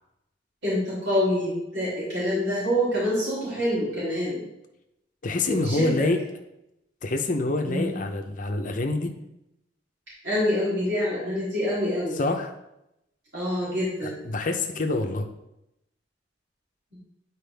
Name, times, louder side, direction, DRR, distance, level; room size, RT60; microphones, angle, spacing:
voice 1, 0.6-4.4 5.5-6.0 7.6-8.0 10.2-12.2 13.3-14.2, equal, 65° right, -9 dB, 3.0 m, -26 dB
voice 2, 5.2-6.2 7.0-9.1 12.2-12.5 14.0-15.3, left 2 dB, 45° left, 5 dB, 0.7 m, -26 dB
9.6 x 4.7 x 3.4 m, 0.86 s
head